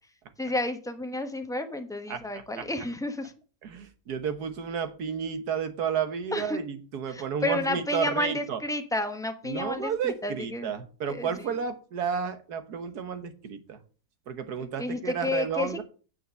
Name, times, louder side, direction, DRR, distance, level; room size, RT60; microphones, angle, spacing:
voice 1, 0.4-3.3 6.3-6.6 7.1-9.9 10.2-10.7 11.0-11.3 14.6-15.7, left 2 dB, 5° left, 6 dB, 0.8 m, -31 dB
voice 2, 2.1-2.7 3.6-8.6 9.4-13.8 14.3-15.8, right 7 dB, 65° right, 9 dB, 1.7 m, -32 dB
9.2 x 5.9 x 6.2 m, 0.38 s
omnidirectional pair, 1.8 m